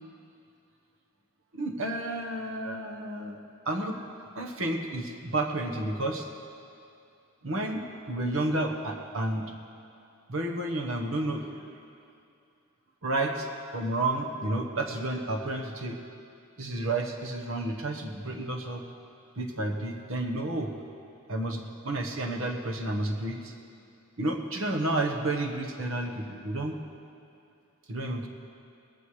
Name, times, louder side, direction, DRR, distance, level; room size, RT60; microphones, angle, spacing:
voice 1, 1.5-3.4 3.6-4.0 4.3-6.3 7.4-9.4 10.3-11.7 13.0-16.0 16.6-18.8 19.4-20.7 21.3-23.5 24.2-26.8 27.9-28.3, right 2 dB, 65° right, 2 dB, 1.2 m, -31 dB
19.5 x 14.5 x 3.3 m, 2.5 s
head